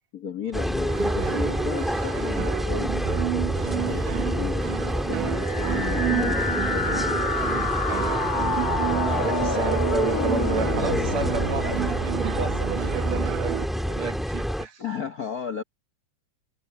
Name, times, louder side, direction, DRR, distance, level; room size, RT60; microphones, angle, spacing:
voice 1, 0.1-7.3 14.8-15.6, left 7 dB, 60° left, 0.9 m, -34 dB
sound 1, 0.5-14.7, equal, ahead, 1.5 m, -28 dB
sound 2, 0.9-13.7, right 16 dB, 90° right, 2.4 m, -31 dB
sound 3, 5.3-13.2, left 4 dB, 30° left, 2.2 m, -29 dB
voice 2, 8.8-14.8, right 6 dB, 60° right, 2.7 m, -32 dB
omnidirectional pair, 3.6 m